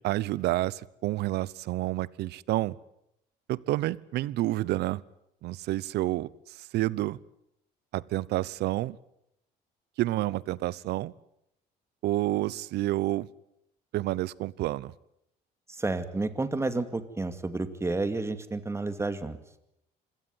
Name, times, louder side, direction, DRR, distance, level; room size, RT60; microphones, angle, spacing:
voice 1, 0.0-2.8 3.5-5.0 5.4-7.2 7.9-9.0 10.0-11.1 12.0-13.3 13.9-14.9, right 16 dB, 80° right, 22 dB, 0.9 m, -29 dB
voice 2, 15.8-19.4, right 3 dB, 15° right, 10 dB, 2.3 m, -30 dB
26.0 x 17.0 x 9.7 m, 0.81 s
cardioid pair, 110°, 17 cm